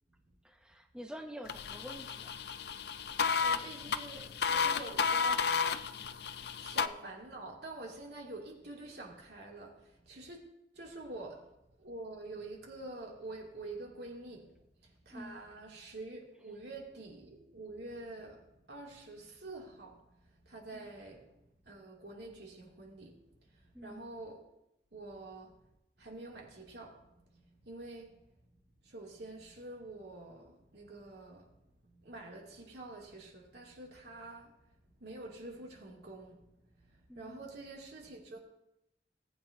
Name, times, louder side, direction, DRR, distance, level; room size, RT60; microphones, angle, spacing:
voice 1, 0.4-2.4 15.1-15.4 20.7-20.9 23.7-24.0 37.1-37.4, equal, 5° right, 0.5 m, -48 dB
sound 1, 1.5-6.9, left 6 dB, 65° left, 0.5 m, -33 dB
voice 2, 3.0-5.6 6.6-10.4 10.7-11.5 11.8-14.5 14.8-21.3 21.6-24.5 24.9-25.6 26.0-28.4 28.8-31.5 31.8-34.6 35.0-36.5 36.8-38.4, right 2 dB, 70° right, 2.4 m, -47 dB
18.5 x 9.0 x 2.6 m
head